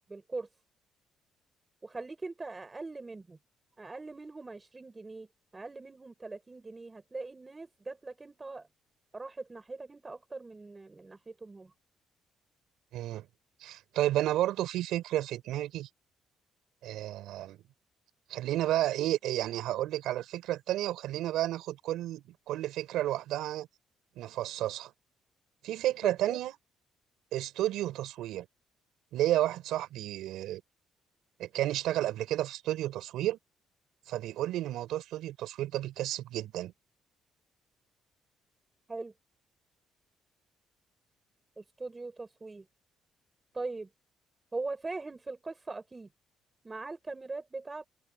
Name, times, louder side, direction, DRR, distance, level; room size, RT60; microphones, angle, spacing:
voice 1, 0.1-0.5 1.8-3.4 3.8-5.3 5.5-8.7 9.1-11.7 26.0-26.4 38.9-39.1 41.6-42.6 43.5-43.9 44.5-46.1 46.6-47.9, right 3 dB, 15° right, 6.8 m, -41 dB
voice 2, 12.9-13.2 13.6-15.9 16.8-17.6 18.3-23.7 24.2-24.9 25.6-26.5 27.3-28.5 29.1-30.6 31.4-33.4 34.1-36.7, right 14 dB, 90° right, 4.9 m, -31 dB
cardioid pair, 175°, 0 cm